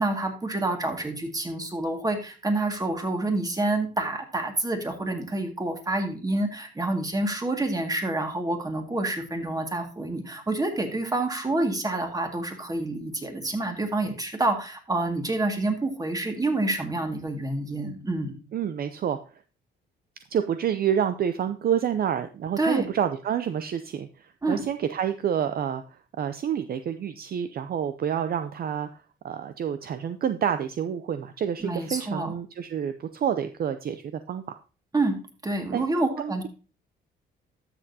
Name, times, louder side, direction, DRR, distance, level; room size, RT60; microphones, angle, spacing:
voice 1, 0.0-18.3 22.6-22.9 24.4-24.6 31.6-32.3 34.9-35.2 35.4-36.4, right 2 dB, 20° right, 4 dB, 2.0 m, -28 dB
voice 2, 18.5-19.2 20.3-25.8 26.2-28.9 29.2-34.4 35.7-35.8 36.2-36.5, right 8 dB, 50° right, 10 dB, 0.5 m, -28 dB
12.5 x 6.7 x 2.8 m, 0.34 s
cardioid pair, 90°, 20 cm